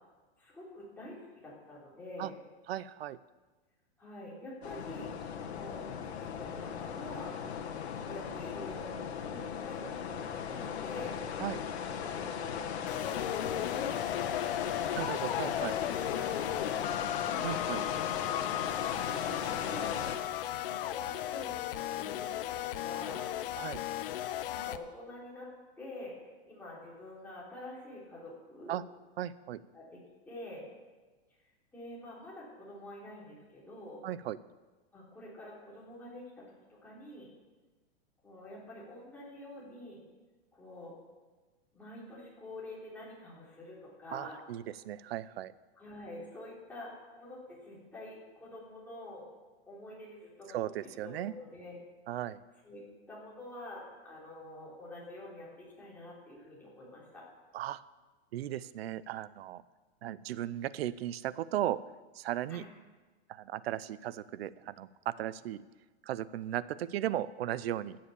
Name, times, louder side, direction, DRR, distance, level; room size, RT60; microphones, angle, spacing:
voice 1, 0.4-2.4 4.0-5.1 5.5-7.4 8.0-14.4 16.5-17.5 19.0-20.2 20.6-23.3 24.5-26.1 26.5-28.8 29.7-30.7 31.7-34.0 34.9-37.3 38.2-40.0 40.5-41.0 41.7-44.4 45.8-49.3 49.7-51.8 52.6-57.3 62.5-62.6, left 1 dB, 5° left, -7 dB, 3.7 m, -47 dB
voice 2, 2.7-3.2 11.4-11.6 14.9-15.7 17.4-17.8 23.6-23.8 28.7-28.8 29.2-29.6 34.0-34.4 44.1-45.5 50.5-51.3 52.1-52.4 57.5-57.8 58.3-59.6 60.0-61.8 62.1-62.6 63.3-65.6 66.0-68.0, right 12 dB, 70° right, 18 dB, 0.6 m, -36 dB
sound 1, 4.6-20.2, left 7 dB, 85° left, 1.6 m, -38 dB
sound 2, 12.9-24.8, left 12 dB, 60° left, 0.7 m, -35 dB
14.0 x 7.6 x 7.0 m, 1.3 s
supercardioid pair, 165°, 32 cm